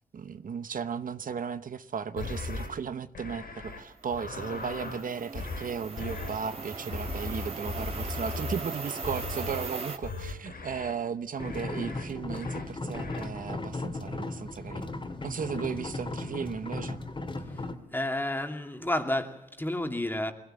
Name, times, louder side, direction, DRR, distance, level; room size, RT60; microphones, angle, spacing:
voice 1, 0.1-14.9 15.2-17.0, right 6 dB, 65° right, 0.9 m, -35 dB
sound 1, 2.2-2.7 3.2-3.8 4.1-5.0 5.3-5.7 6.0-6.4 6.9-8.6 9.0-9.7 10.0-10.9 11.4-12.0 12.3-12.6 12.9-13.3, left 3 dB, 80° left, 6.1 m, -37 dB
sound 2, 4.1-10.0, right 4 dB, 40° right, 3.0 m, -39 dB
sound 3, 11.4-17.8, left 2 dB, 35° left, 2.7 m, -36 dB
voice 2, 17.9-20.3, left 1 dB, 15° left, 2.6 m, -30 dB
22.0 x 17.0 x 9.0 m
cardioid pair, 70°, 15 cm